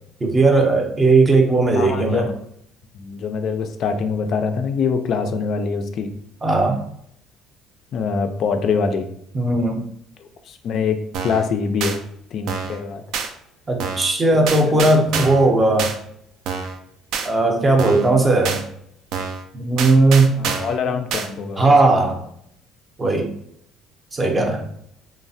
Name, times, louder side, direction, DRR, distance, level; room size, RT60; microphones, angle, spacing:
voice 1, 0.2-2.3 6.4-6.8 9.3-9.8 13.7-15.9 17.2-18.6 19.5-20.3 21.6-22.2 23.0-23.3 24.1-24.6, right 2 dB, 20° right, 2 dB, 0.5 m, -17 dB
voice 2, 1.7-2.3 2.9-6.1 7.9-9.1 10.2-12.0 12.3-13.0 14.3-14.8 20.3-22.0 24.4-24.7, left 5 dB, 50° left, 7 dB, 0.3 m, -24 dB
sound 1, 11.1-11.5 11.8-12.0 12.5-12.8 13.1-13.3 13.8-14.1 14.5-15.5 15.8-16.0 16.5-16.8 17.1-17.3 17.8-18.1 18.4-18.6 19.1-19.4 19.8-20.8 21.1-21.3, right 6 dB, 70° right, 0.3 m, -26 dB
3.1 x 2.0 x 2.6 m, 0.70 s
cardioid pair, 125°, 0 cm